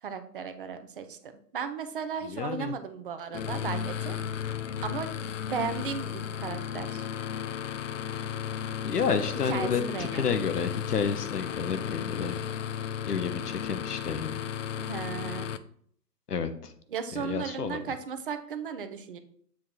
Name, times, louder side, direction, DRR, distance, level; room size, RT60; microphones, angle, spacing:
voice 1, 0.0-4.2 4.8-5.1 5.5-7.1 9.5-10.3 14.8-15.5 16.9-19.2, right 6 dB, 35° right, 9 dB, 0.6 m, -35 dB
voice 2, 2.2-2.7 8.1-8.3 8.8-12.3 13.0-14.4 16.3-16.7 17.1-17.9, left 6 dB, 70° left, 9 dB, 1.0 m, -30 dB
sound 1, 3.3-15.6, left 9 dB, 50° left, 0.5 m, -34 dB
7.3 x 3.7 x 4.4 m, 0.62 s
figure-of-eight pair, 130°, 49 cm